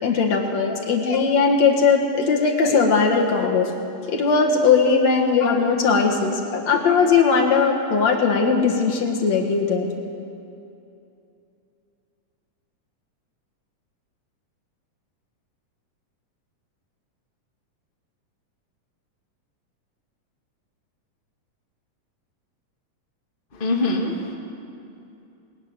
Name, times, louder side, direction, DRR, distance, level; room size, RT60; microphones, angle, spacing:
voice 1, 0.0-3.7 4.1-9.9, left 5 dB, 60° left, 1 dB, 2.8 m, -19 dB
voice 2, 23.5-24.3, left 2 dB, 20° left, 0 dB, 1.8 m, -24 dB
20.5 x 14.0 x 9.7 m, 2.7 s
omnidirectional pair, 3.6 m